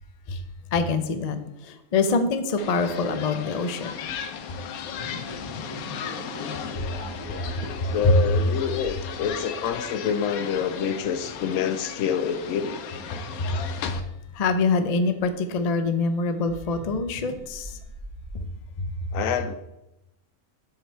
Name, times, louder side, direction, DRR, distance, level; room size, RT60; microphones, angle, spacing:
voice 1, 0.7-3.9 6.7-6.9 7.8-8.2 13.4-14.0 14.3-17.8 18.3-18.5 18.8-19.1, left 3 dB, 50° left, 9 dB, 0.4 m, -25 dB
sound 1, 2.6-14.0, left 8 dB, 90° left, 1.1 m, -36 dB
sound 2, 4.9-15.0 16.3-18.5, equal, 90° right, 2.3 m, -43 dB
voice 2, 7.9-12.8 19.1-19.5, left 7 dB, 75° left, 11 dB, 1.0 m, -27 dB
7.8 x 4.9 x 4.5 m, 0.92 s
omnidirectional pair, 1.5 m